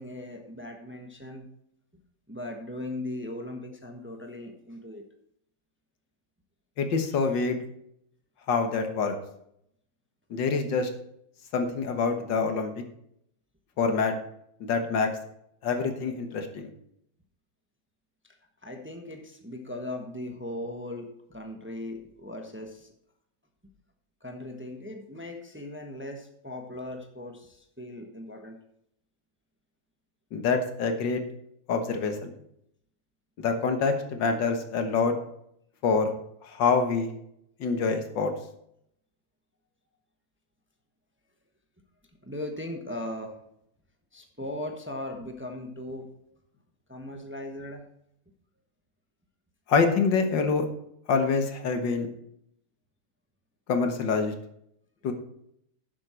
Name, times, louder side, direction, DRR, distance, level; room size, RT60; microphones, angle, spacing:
voice 1, 0.0-1.5 2.3-5.1 18.2-18.4 18.6-22.9 24.2-28.6 42.2-43.4 44.1-46.1 46.9-47.9, left 1 dB, 10° right, 3 dB, 1.0 m, -38 dB
voice 2, 6.8-7.6 8.5-9.2 10.3-10.9 11.5-12.7 13.8-14.1 14.7-15.1 15.6-16.7 30.3-31.2 31.7-32.3 33.4-35.2 35.8-36.1 36.4-37.1 37.6-38.3 49.7-50.6 51.1-52.1 53.7-54.3 55.0-55.1, left 4 dB, 85° left, 6 dB, 2.0 m, -26 dB
11.0 x 7.5 x 4.4 m, 0.74 s
omnidirectional pair, 1.9 m